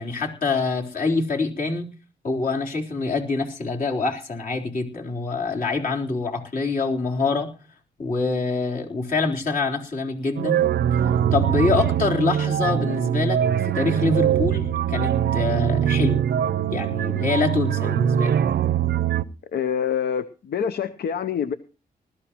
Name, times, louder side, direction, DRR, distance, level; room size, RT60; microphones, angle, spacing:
voice 1, 0.0-1.9 2.2-7.5 8.0-10.6 11.0-16.2 16.7-18.3, left 3 dB, 55° left, -1 dB, 3.8 m, -25 dB
sound 1, 10.4-19.2, right 9 dB, 75° right, 0.6 m, -22 dB
voice 2, 19.5-21.5, left 8 dB, 75° left, 12 dB, 0.8 m, -26 dB
20.0 x 13.5 x 3.0 m, 0.34 s
cardioid pair, 75°, 17 cm